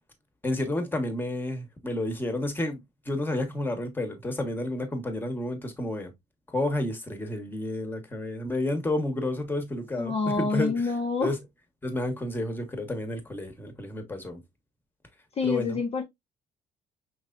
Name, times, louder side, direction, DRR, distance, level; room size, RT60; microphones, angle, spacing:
voice 1, 0.4-2.8 3.0-6.1 6.5-10.7 11.2-11.4 11.8-14.4 15.4-15.8, left 1 dB, 10° left, 1.2 m, -30 dB
voice 2, 9.9-11.3 15.4-16.0, left 4 dB, 35° left, 0.9 m, -27 dB
5.6 x 3.1 x 2.5 m
cardioid pair, 110°, 17 cm